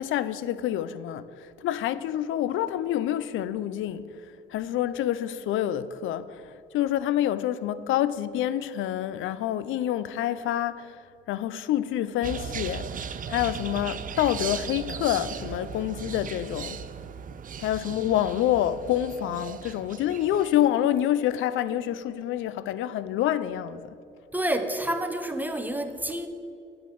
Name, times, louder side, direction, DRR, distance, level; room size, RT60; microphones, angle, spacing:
voice 1, 0.0-11.0 11.3-12.9 13.3-16.8 17.6-23.9, left 12 dB, 80° left, 0.5 m, -27 dB
sound 1, 12.2-20.7, right 7 dB, 45° right, 0.5 m, -37 dB
voice 2, 24.3-26.3, right 1 dB, 10° right, 0.8 m, -29 dB
9.5 x 5.2 x 7.7 m
cardioid pair, 90°, 20 cm